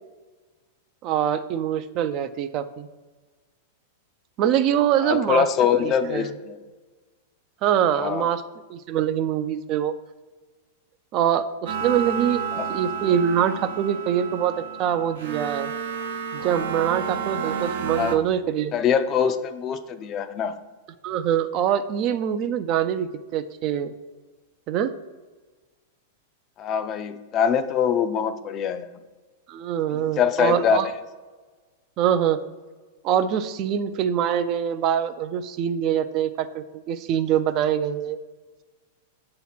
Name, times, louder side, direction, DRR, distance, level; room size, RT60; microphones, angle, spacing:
voice 1, 1.0-2.9 4.4-5.4 5.8-6.3 7.6-8.4 8.7-9.9 11.1-15.7 16.3-18.7 21.0-23.9 24.7-24.9 29.5-30.9 32.0-32.4 33.0-38.2, right 9 dB, 40° right, 11 dB, 0.3 m, -24 dB
voice 2, 5.0-6.6 7.9-8.3 12.6-12.7 18.0-18.2 18.7-20.5 26.6-28.9 29.9-30.9, left 7 dB, 30° left, 10 dB, 0.4 m, -23 dB
sound 1, 11.7-18.2, right 6 dB, 85° right, 0.7 m, -31 dB
7.2 x 2.9 x 5.8 m, 1.3 s
hypercardioid pair, 135°, 0 cm